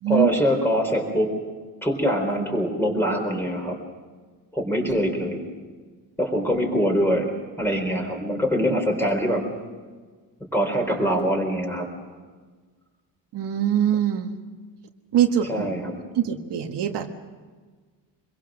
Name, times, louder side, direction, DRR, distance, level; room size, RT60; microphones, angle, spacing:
voice 1, 0.1-1.3 1.8-3.7 4.5-5.4 6.2-7.3 7.6-9.4 10.5-11.9 15.5-16.0, equal, 5° left, 2 dB, 4.0 m, -23 dB
voice 2, 13.3-14.3 15.1-15.7 16.1-17.1, right 10 dB, 75° right, 4 dB, 1.6 m, -23 dB
25.0 x 22.5 x 6.4 m, 1.4 s
cardioid pair, 150°, 42 cm